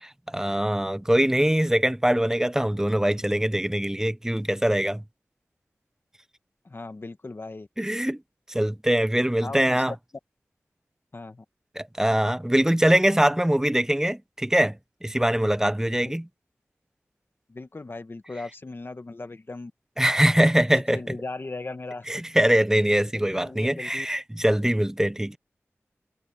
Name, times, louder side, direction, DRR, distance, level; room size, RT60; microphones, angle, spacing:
voice 1, 0.0-5.0 7.8-8.2 8.5-9.9 11.8-16.3 20.0-21.0 22.1-25.4, right 1 dB, 10° right, 0.8 m, -23 dB
voice 2, 6.6-7.7 9.4-10.0 11.1-11.4 16.0-16.1 17.5-19.7 20.7-22.2 23.1-24.1, left 3 dB, 45° left, 1.3 m, -38 dB
wide cardioid pair, 60°, 5 cm